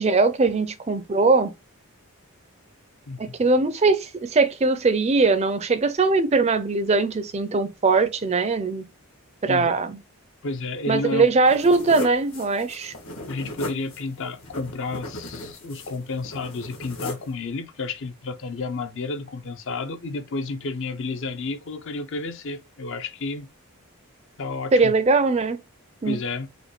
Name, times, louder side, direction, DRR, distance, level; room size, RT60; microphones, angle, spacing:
voice 1, 0.0-1.5 3.2-8.8 9.4-10.0 10.9-12.9 24.7-25.6 26.0-26.2, right 3 dB, 30° right, 0.4 m, -21 dB
voice 2, 10.4-11.3 13.3-23.5 24.4-24.9 26.0-26.5, left 3 dB, 55° left, 0.5 m, -31 dB
sound 1, 11.4-17.3, left 1 dB, 75° left, 1.4 m, -37 dB
5.0 x 2.2 x 3.1 m
head